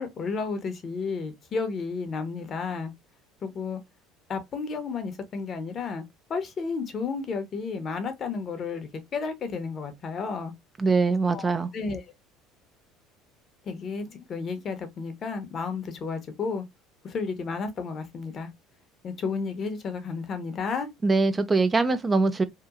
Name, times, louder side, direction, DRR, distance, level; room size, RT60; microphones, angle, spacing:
voice 1, 0.0-2.9 3.4-3.8 4.3-6.0 6.3-10.5 11.3-12.0 13.7-16.6 17.0-18.5 19.0-20.9, left 4 dB, 45° left, 0.8 m, -32 dB
voice 2, 10.8-11.7 21.0-22.4, right 3 dB, 25° right, 0.4 m, -22 dB
2.8 x 2.2 x 2.4 m
hypercardioid pair, 75°, 0 cm